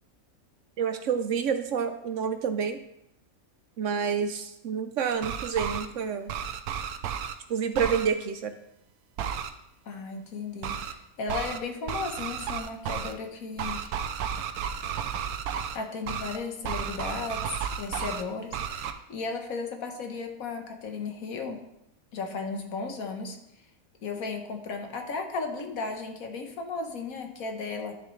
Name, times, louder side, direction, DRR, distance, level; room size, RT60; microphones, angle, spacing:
voice 1, 0.8-2.8 3.8-6.3 7.5-8.5, right 6 dB, 65° right, 9 dB, 0.9 m, -28 dB
sound 1, 5.1-5.9 6.3-7.3 7.7-8.1 9.2-9.5 10.6-10.9 11.3-11.6 11.9-13.1 13.6-15.8 16.1-16.4 16.6-18.2 18.5-18.9, right 8 dB, 90° right, 1.2 m, -33 dB
voice 2, 9.8-13.9 15.7-17.4 17.7-21.6 22.1-23.4 24.0-28.0, left 4 dB, 70° left, 4 dB, 1.5 m, -35 dB
11.0 x 6.9 x 3.2 m, 0.81 s
omnidirectional pair, 1.5 m